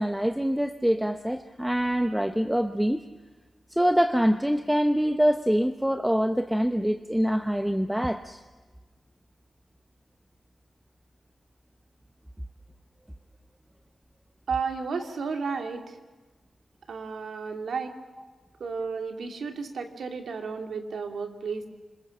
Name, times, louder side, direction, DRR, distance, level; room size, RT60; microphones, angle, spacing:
voice 1, 0.0-3.0 3.7-8.4 18.2-18.3, equal, 5° right, 8 dB, 0.9 m, -25 dB
voice 2, 14.5-16.0 16.9-17.9 18.6-21.7, right 5 dB, 90° right, 4 dB, 2.7 m, -32 dB
26.5 x 21.0 x 7.3 m, 1.3 s
wide cardioid pair, 115°, 0 cm